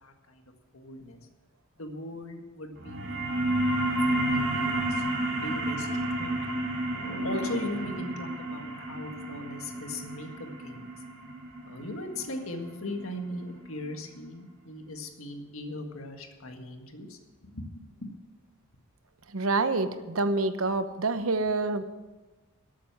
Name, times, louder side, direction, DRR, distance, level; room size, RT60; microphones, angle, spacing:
voice 1, 0.0-1.2 1.8-5.1 5.4-5.9 6.2-6.5 6.9-10.9 11.6-17.2 17.5-18.1, left 1 dB, 80° left, 4 dB, 1.8 m, -39 dB
sound 1, 2.8-13.9, right 1 dB, 55° right, 2.8 m, -31 dB
voice 2, 19.3-21.8, right 3 dB, 80° right, 11 dB, 0.9 m, -27 dB
13.0 x 8.4 x 7.3 m, 1.2 s
head